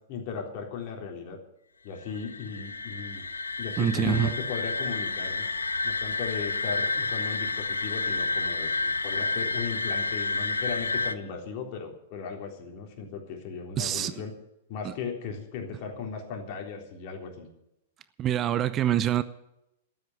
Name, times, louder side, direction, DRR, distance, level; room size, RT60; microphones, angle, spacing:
voice 1, 0.1-1.4 1.8-3.3 3.6-5.5 5.8-14.3 14.7-17.5, left 6 dB, 45° left, 2 dB, 3.6 m, -37 dB
sound 1, 2.0-11.1, left 3 dB, 85° left, 0.6 m, -30 dB
voice 2, 3.8-4.3 13.8-14.1 14.8-14.9 18.2-19.2, right 10 dB, 30° right, 15 dB, 0.7 m, -25 dB
13.0 x 9.3 x 9.6 m, 0.84 s
figure-of-eight pair, 105°, 0 cm